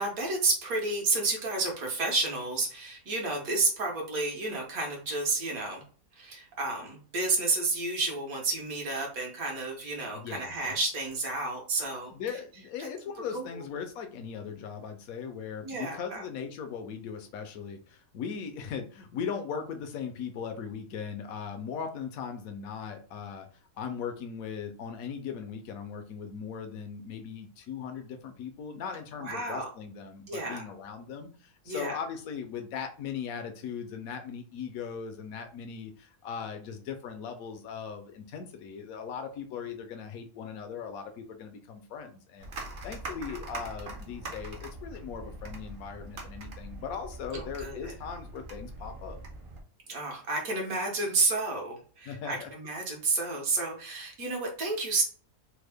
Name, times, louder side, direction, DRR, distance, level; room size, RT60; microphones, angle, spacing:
voice 1, 0.0-5.8 6.2-12.1 12.8-12.9 13.3-13.4 15.6-16.2 29.2-29.7 30.3-30.6 31.7-32.0 47.3-47.9 49.9-55.0, right 3 dB, 65° right, 1 dB, 1.3 m, -31 dB
voice 2, 10.1-10.7 12.1-23.5 23.8-42.5 42.8-49.2 52.1-52.5, left 7 dB, 70° left, 6 dB, 1.0 m, -39 dB
sound 1, 42.4-49.6, right 2 dB, 50° right, 0.8 m, -42 dB
3.5 x 2.1 x 3.4 m, 0.42 s
omnidirectional pair, 1.7 m